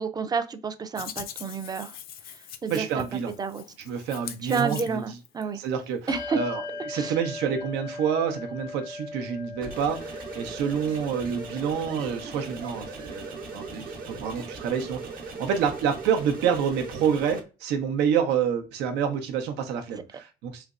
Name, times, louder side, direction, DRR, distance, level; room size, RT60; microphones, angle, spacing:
voice 1, 0.0-1.9 2.6-2.9 3.4-3.6 4.5-5.6 6.1-6.4 6.9-7.1, right 5 dB, 25° right, 0.4 m, -29 dB
Hands, 1.0-5.4, left 9 dB, 60° left, 0.5 m, -42 dB
voice 2, 2.7-3.3 3.8-5.2 5.5-20.6, right 7 dB, 90° right, 0.8 m, -28 dB
Bell, 6.1-16.1, left 3 dB, 80° left, 0.8 m, -41 dB
sound 1, 9.6-17.4, right 4 dB, 60° right, 1.0 m, -39 dB
3.3 x 3.0 x 2.5 m
cardioid pair, 110°, 17 cm